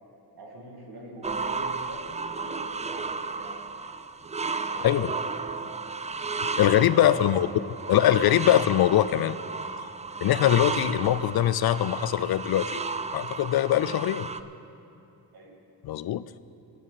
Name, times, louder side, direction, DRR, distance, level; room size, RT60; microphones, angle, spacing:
voice 1, 0.3-3.8 4.6-5.6 6.8-7.4 7.8-8.0 15.3-15.6, right 2 dB, 80° right, -2 dB, 2.6 m, -43 dB
sound 1, 1.2-14.4, right 4 dB, 20° right, 0.3 m, -33 dB
voice 2, 6.4-7.5 7.9-9.4 10.2-12.8 13.1-14.3 15.8-16.4, left 12 dB, 75° left, 15 dB, 0.5 m, -22 dB
23.5 x 8.4 x 4.2 m, 2.7 s
wide cardioid pair, 100°, 37 cm